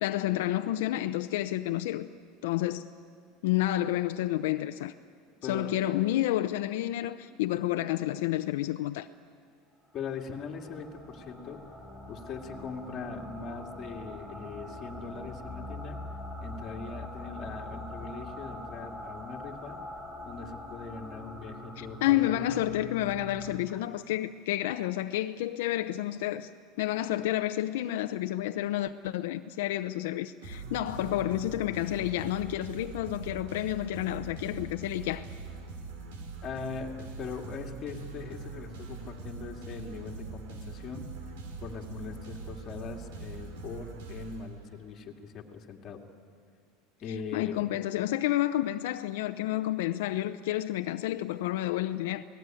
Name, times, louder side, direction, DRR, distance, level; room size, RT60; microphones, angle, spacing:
voice 1, 0.0-2.1 2.4-2.9 3.4-4.9 5.5-9.1 21.8-26.5 26.8-35.2 47.3-52.2, left 14 dB, 75° left, 0.7 m, -30 dB
voice 2, 9.9-11.6 12.1-16.0 16.4-19.8 20.2-22.5 23.7-23.9 36.4-41.1 41.6-46.0 47.0-47.7, left 5 dB, 25° left, 2.3 m, -41 dB
sound 1, 10.1-23.6, left 1 dB, 5° right, 5.1 m, -43 dB
sound 2, 30.4-45.0, right 4 dB, 80° right, 4.2 m, -42 dB
28.5 x 19.0 x 9.1 m
supercardioid pair, 170°, 0 cm